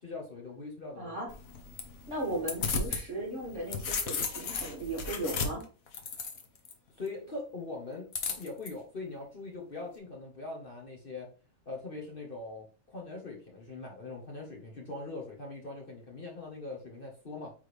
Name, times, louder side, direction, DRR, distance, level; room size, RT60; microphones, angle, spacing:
voice 1, 0.0-1.2 7.0-11.3 11.6-17.5, left 3 dB, 40° left, -1 dB, 1.4 m, -42 dB
voice 2, 0.9-1.3 2.1-5.6, right 1 dB, 50° right, -3 dB, 3.2 m, -36 dB
sound 1, 1.3-3.0 3.4-6.7 8.1-8.7, left 5 dB, 65° left, 1.4 m, -35 dB
8.6 x 3.7 x 3.4 m, 0.37 s
omnidirectional pair, 1.6 m